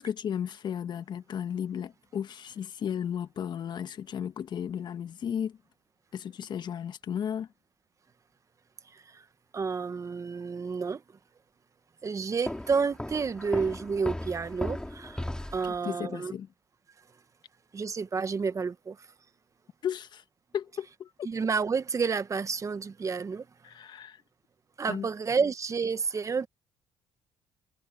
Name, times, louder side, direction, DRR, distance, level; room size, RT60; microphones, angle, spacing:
voice 1, 0.0-5.6 6.1-7.5 15.8-16.5 19.8-20.2 20.5-21.1 23.6-24.2 24.9-25.1, left 8 dB, 55° left, 1.4 m, -34 dB
voice 2, 8.9-9.2 9.5-11.0 12.0-15.2 15.5-16.3 17.7-19.1 21.2-23.5 24.8-26.5, right 5 dB, 35° right, 1.3 m, -30 dB
Walk footsteps, 12.5-15.8, left 1 dB, 10° left, 4.4 m, -36 dB
supercardioid pair, 65°, 9 cm